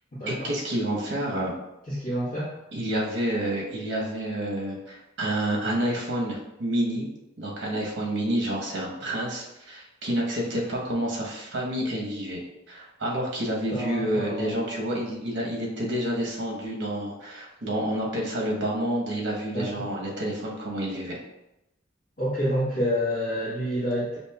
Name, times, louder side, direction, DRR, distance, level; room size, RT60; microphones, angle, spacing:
voice 1, 0.3-1.5 2.7-7.1 7.4-12.4 12.7-21.2, right 1 dB, 65° right, -2 dB, 0.9 m, -29 dB
voice 2, 1.9-2.5 13.7-14.5 19.5-19.8 22.2-24.2, equal, 50° left, -12 dB, 1.3 m, -28 dB
5.1 x 2.7 x 2.3 m, 0.92 s
head